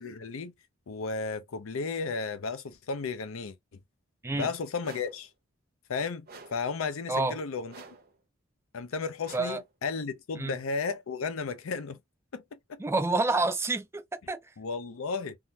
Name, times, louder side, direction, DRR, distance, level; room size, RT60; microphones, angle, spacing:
voice 1, 0.0-0.5 0.9-3.5 4.3-5.3 5.9-7.7 8.7-12.0 12.3-12.8 14.6-15.4, left 4 dB, 85° left, 0.5 m, -34 dB
sound 1, 4.8-5.3 6.3-6.7 7.7-8.2 9.2-9.7, right 4 dB, 50° right, 0.7 m, -49 dB
voice 2, 12.8-14.4, right 3 dB, 15° right, 0.4 m, -28 dB
3.6 x 2.1 x 2.7 m
head